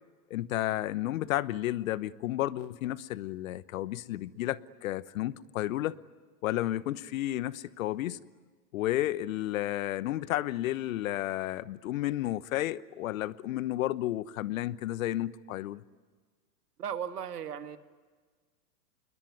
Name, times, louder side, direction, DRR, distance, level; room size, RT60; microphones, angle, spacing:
voice 1, 0.3-6.0 6.4-8.2 8.7-15.8, left 14 dB, 55° left, 18 dB, 1.1 m, -32 dB
voice 2, 16.8-17.8, right 8 dB, 75° right, 10 dB, 1.8 m, -36 dB
28.5 x 22.0 x 9.5 m, 1.5 s
hypercardioid pair, 115°, 47 cm